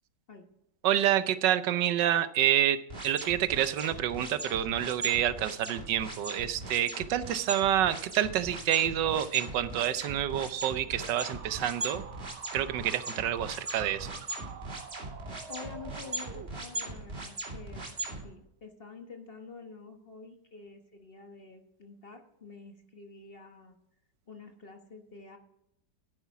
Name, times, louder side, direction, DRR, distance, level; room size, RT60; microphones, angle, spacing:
voice 1, 0.8-2.8 3.0-12.0 12.5-14.1, right 11 dB, 85° right, 13 dB, 1.4 m, -28 dB
sound 1, 2.9-18.2, right 2 dB, 35° right, 2.6 m, -39 dB
sound 2, 10.9-16.9, right 8 dB, 55° right, 0.8 m, -48 dB
voice 2, 15.5-17.8 18.2-23.8 24.3-25.4, left 4 dB, 35° left, 5 dB, 1.2 m, -48 dB
11.5 x 9.6 x 4.7 m, 0.80 s
omnidirectional pair, 1.9 m